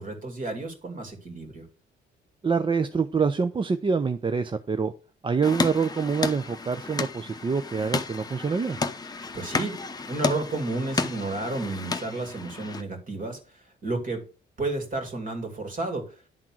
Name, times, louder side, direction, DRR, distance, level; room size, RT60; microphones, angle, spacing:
voice 1, 0.0-1.7 9.3-9.8 10.1-14.2 14.6-16.2, right 2 dB, 40° right, 5 dB, 2.6 m, -32 dB
voice 2, 2.4-4.9 5.2-8.8, right 5 dB, 25° right, 10 dB, 0.5 m, -26 dB
sound 1, 5.4-12.8, left 3 dB, 20° left, 0.8 m, -32 dB
10.5 x 3.7 x 6.1 m, 0.35 s
cardioid pair, 90°, 20 cm